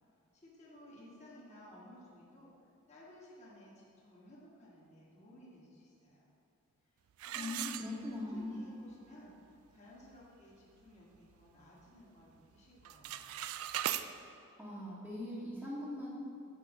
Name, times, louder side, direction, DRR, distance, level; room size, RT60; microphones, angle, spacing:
voice 1, 0.3-2.5 2.9-6.3 7.2-13.4, left 1 dB, 30° left, -6 dB, 1.5 m, -56 dB
sound 1, 7.2-8.5 8.9-9.0 9.6-9.7 10.1-10.4 10.8-11.9 12.2-12.5 12.8-14.1, right 12 dB, 70° right, 0.3 m, -39 dB
voice 2, 7.3-8.6 14.6-16.1, left 1 dB, 5° right, -10 dB, 1.1 m, -41 dB
7.0 x 4.8 x 6.0 m, 2.5 s
head